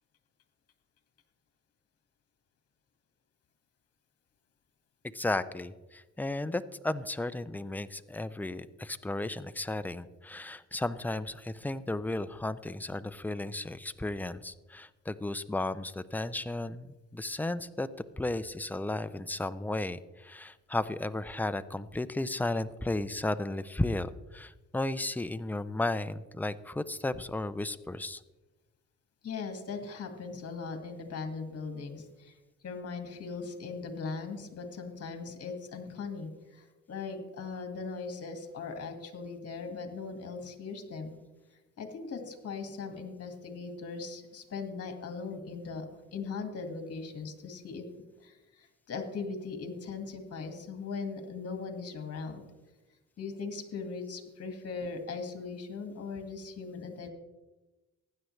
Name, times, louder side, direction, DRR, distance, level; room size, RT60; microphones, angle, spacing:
voice 1, 5.1-17.9 18.2-28.2, left 2 dB, 5° left, 13 dB, 0.4 m, -34 dB
voice 2, 29.2-32.4 32.6-41.1 41.8-45.9 46.1-47.9 48.2-52.5 53.2-57.1, left 4 dB, 55° left, 5 dB, 2.0 m, -39 dB
15.5 x 10.0 x 3.2 m, 1.1 s
cardioid pair, 90°, 30 cm